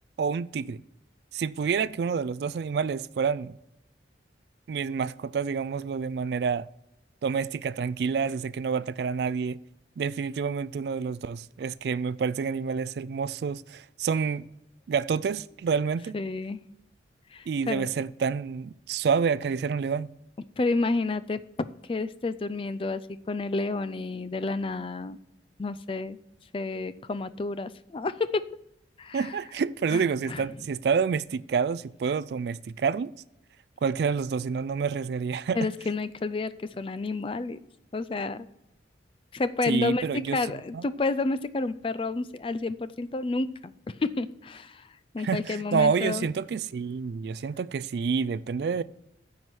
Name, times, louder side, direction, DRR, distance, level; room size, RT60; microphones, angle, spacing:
voice 1, 0.2-0.8 1.3-3.6 4.7-6.7 7.2-9.6 10.0-14.5 14.9-16.1 17.5-20.1 29.1-33.1 33.8-35.6 39.7-40.4 40.7-40.8 45.2-48.8, right 6 dB, 60° right, 0.3 m, -28 dB
voice 2, 16.1-16.6 17.3-17.9 20.6-25.2 25.6-26.2 26.5-28.5 29.0-29.3 29.9-30.4 35.5-37.6 37.9-38.5 39.3-43.7 44.0-44.9 45.1-46.3, left 3 dB, 30° left, 0.4 m, -30 dB
9.7 x 4.8 x 7.6 m
head